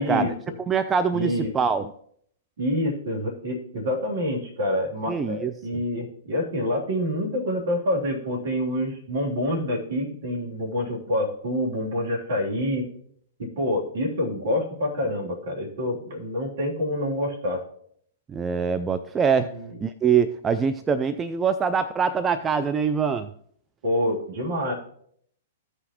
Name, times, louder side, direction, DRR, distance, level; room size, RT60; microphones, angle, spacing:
voice 1, 0.0-0.5 1.1-1.5 2.6-12.9 13.4-17.6 19.4-19.8 23.8-24.7, left 1 dB, 55° right, -2 dB, 2.9 m, -27 dB
voice 2, 0.7-1.9 5.1-5.5 18.3-19.5 19.8-23.3, right 6 dB, 15° right, 10 dB, 0.4 m, -24 dB
14.5 x 5.6 x 2.9 m, 0.66 s
figure-of-eight pair, 105°, 0 cm